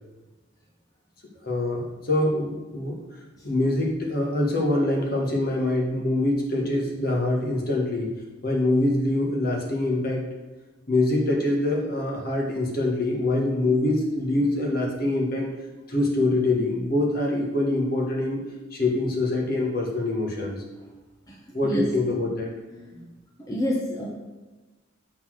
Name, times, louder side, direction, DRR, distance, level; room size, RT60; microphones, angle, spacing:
voice 1, 1.4-3.0 3.4-8.1 8.4-10.2 10.9-15.5 15.9-18.4 18.7-20.6 21.5-22.5, left 2 dB, 50° left, -1 dB, 1.5 m, -24 dB
voice 2, 23.4-24.1, left 1 dB, 20° left, -3 dB, 0.8 m, -28 dB
6.9 x 4.0 x 6.3 m, 1.2 s
head